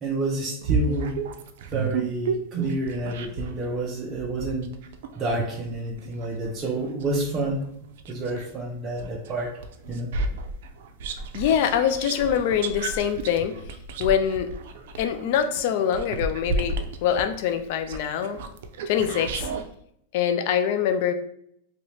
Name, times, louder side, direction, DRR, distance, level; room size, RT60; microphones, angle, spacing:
voice 1, 0.0-1.2 1.7-4.7 5.2-7.6 8.1-9.5 9.9-10.1, right 2 dB, 25° right, -2 dB, 0.6 m, -29 dB
sound 1, 0.6-3.6 4.1-8.5 9.0-19.7, right 4 dB, 70° right, 0.4 m, -32 dB
voice 2, 11.3-13.6 14.0-14.5 15.0-16.7 17.0-18.4 18.9-19.5 20.1-21.1, left 8 dB, 60° left, 9 dB, 0.3 m, -24 dB
2.9 x 2.7 x 3.1 m, 0.69 s
supercardioid pair, 140°, 0 cm